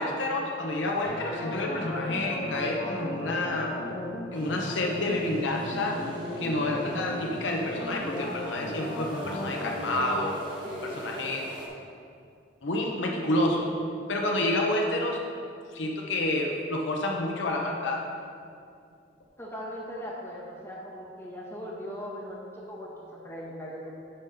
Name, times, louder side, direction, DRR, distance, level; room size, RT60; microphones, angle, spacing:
voice 1, 0.0-3.7 4.3-6.0 6.4-10.4 10.8-11.4 12.6-13.7 14.1-15.2 15.7-18.1, left 1 dB, 75° left, 0 dB, 0.8 m, -29 dB
sound 1, 1.0-10.2, left 1 dB, 60° left, 1.2 m, -36 dB
sound 2, 4.3-11.7, right 1 dB, 25° right, 1.2 m, -42 dB
voice 2, 10.6-11.1 19.4-22.9 23.2-23.9, equal, 15° left, -5 dB, 1.6 m, -39 dB
9.7 x 3.8 x 5.8 m, 2.4 s
head